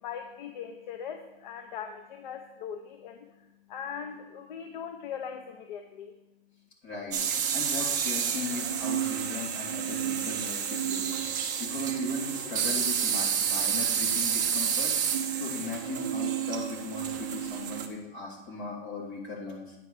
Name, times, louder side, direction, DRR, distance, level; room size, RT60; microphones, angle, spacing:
voice 1, 0.0-6.2, left 7 dB, 50° left, 6 dB, 0.7 m, -40 dB
voice 2, 6.8-7.2 7.5-14.9 15.3-19.8, left 4 dB, 35° left, -4 dB, 2.7 m, -38 dB
sound 1, 7.1-17.9, right 8 dB, 20° right, 0.4 m, -29 dB
9.2 x 4.6 x 6.5 m, 1.1 s
hypercardioid pair, 170°, 30 cm